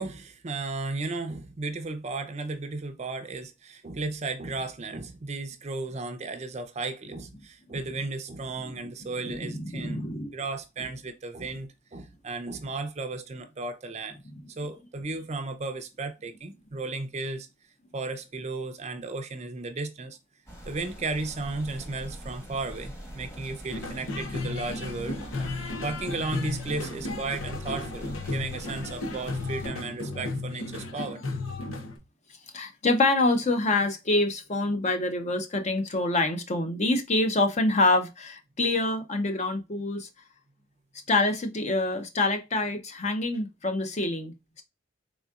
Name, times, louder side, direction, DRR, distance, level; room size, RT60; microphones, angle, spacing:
voice 1, 0.0-14.2 14.6-17.5 17.9-20.2 20.7-25.5 25.8-31.2, right 3 dB, 35° right, 0.5 m, -34 dB
voice 2, 9.2-10.3 14.3-14.4 32.5-40.1 41.1-44.6, left 2 dB, 35° left, 0.7 m, -26 dB
sound 1, 20.5-29.7, right 1 dB, 15° left, 1.2 m, -43 dB
sound 2, 23.7-32.0, left 2 dB, 85° left, 0.8 m, -34 dB
3.9 x 3.7 x 2.3 m
head